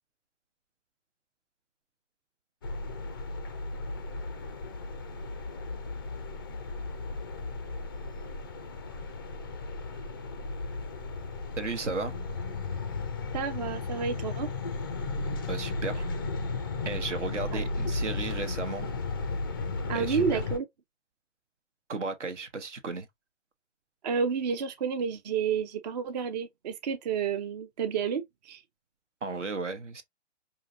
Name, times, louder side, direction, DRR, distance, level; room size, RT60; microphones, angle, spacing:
sound 1, 2.6-20.6, left 3 dB, 20° left, 0.3 m, -35 dB
voice 1, 11.6-12.1 15.5-16.2 16.8-18.9 19.9-20.4 21.9-23.1 29.2-30.0, right 4 dB, 70° right, 1.1 m, -34 dB
voice 2, 13.3-14.5 17.5-17.6 19.9-20.6 24.0-28.6, right 6 dB, 35° right, 0.5 m, -30 dB
4.8 x 2.6 x 2.6 m
figure-of-eight pair, 120°, 37 cm